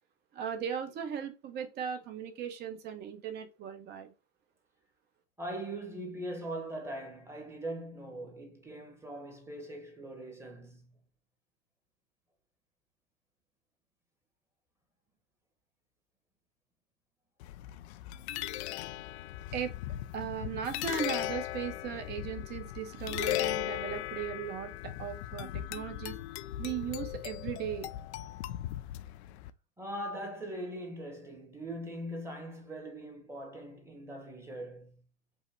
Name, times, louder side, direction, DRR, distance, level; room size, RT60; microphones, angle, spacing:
voice 1, 0.3-4.1 19.5-19.7 20.1-26.1 26.6-27.9, right 8 dB, 25° right, 0.8 m, -37 dB
voice 2, 5.4-10.9 29.8-35.0, right 1 dB, 5° right, 1.2 m, -41 dB
sound 1, 17.4-29.5, left 14 dB, 60° left, 0.5 m, -38 dB
5.6 x 2.1 x 4.3 m
hypercardioid pair, 115°, 37 cm